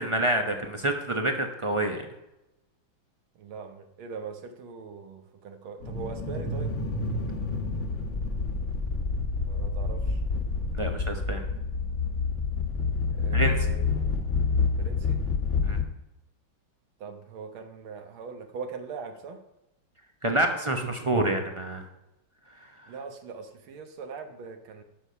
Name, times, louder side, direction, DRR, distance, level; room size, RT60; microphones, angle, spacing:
voice 1, 0.0-2.0 10.7-11.4 13.3-13.7 15.6-15.8 20.2-21.8, right 1 dB, 50° right, 4 dB, 0.3 m, -27 dB
voice 2, 3.4-6.8 9.5-10.2 13.1-14.1 14.8-15.2 17.0-19.4 22.9-24.8, right 5 dB, 90° right, 6 dB, 2.0 m, -41 dB
sound 1, 5.8-15.8, left 4 dB, 40° left, 1.3 m, -28 dB
11.5 x 6.7 x 5.6 m, 0.92 s
omnidirectional pair, 2.2 m